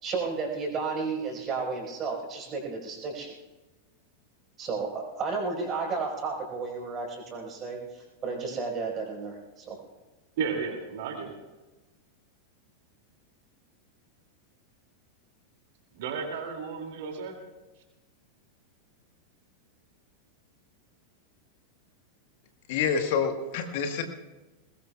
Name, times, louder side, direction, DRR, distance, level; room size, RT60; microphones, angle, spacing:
voice 1, 0.0-3.3 4.6-9.8, right 4 dB, 30° right, 0 dB, 4.9 m, -33 dB
voice 2, 10.4-11.3 15.9-17.3, right 5 dB, 50° right, 2 dB, 2.6 m, -33 dB
voice 3, 22.7-24.0, left 6 dB, 50° left, 6 dB, 1.4 m, -27 dB
21.5 x 20.5 x 2.4 m, 1.1 s
figure-of-eight pair, 90°, 0 cm